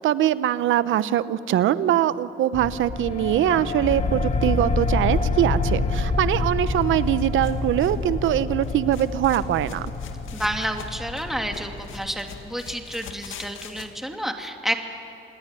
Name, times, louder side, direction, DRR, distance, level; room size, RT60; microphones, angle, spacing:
voice 1, 0.0-9.9, right 12 dB, 80° right, 15 dB, 0.9 m, -22 dB
sound 1, 2.5-12.7, left 3 dB, 40° left, 1.8 m, -27 dB
sound 2, 6.8-13.9, left 7 dB, 80° left, 2.0 m, -44 dB
voice 2, 10.3-14.7, equal, ahead, 3 dB, 2.7 m, -30 dB
27.5 x 20.0 x 9.9 m, 2.7 s
cardioid pair, 90°, 20 cm